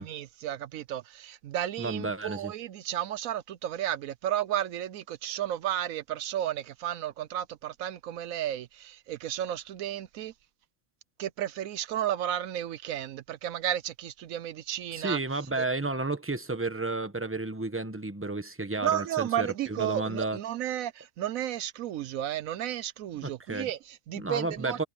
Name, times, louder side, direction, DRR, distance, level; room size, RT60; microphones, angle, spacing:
voice 1, 0.0-10.3 11.2-15.2 15.6-15.7 18.8-24.8, right 11 dB, 70° right, 1.0 m, -33 dB
voice 2, 1.8-2.5 14.9-20.4 23.2-23.7 24.1-24.8, right 2 dB, 10° right, 1.0 m, -32 dB
omnidirectional pair, 1.6 m